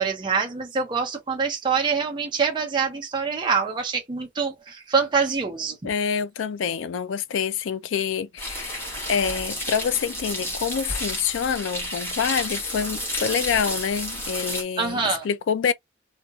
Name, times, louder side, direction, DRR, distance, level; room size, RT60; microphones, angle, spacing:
voice 1, 0.0-5.9 14.8-15.2, right 5 dB, 25° right, 0.5 m, -25 dB
voice 2, 5.8-15.7, left 7 dB, 80° left, 0.4 m, -26 dB
sound 1, 8.4-14.6, equal, 10° left, 1.0 m, -31 dB
2.8 x 2.2 x 2.3 m
head